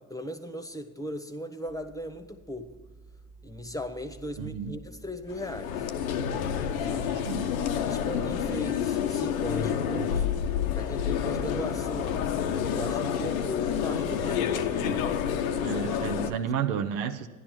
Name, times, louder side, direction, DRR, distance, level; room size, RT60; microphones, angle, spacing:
voice 1, 0.0-2.7 3.4-5.8 6.8-7.1 7.8-10.3 10.7-12.2 12.7-15.0 16.3-16.4, left 1 dB, 10° left, 1.1 m, -38 dB
sound 1, 1.7-12.7, right 1 dB, 35° right, 0.9 m, -49 dB
voice 2, 4.4-4.8 7.3-7.4 14.8-15.0 15.6-17.3, right 7 dB, 70° right, 0.7 m, -31 dB
sound 2, 5.3-16.3, left 8 dB, 75° left, 0.8 m, -29 dB
13.5 x 11.0 x 4.6 m
figure-of-eight pair, 50°, 42 cm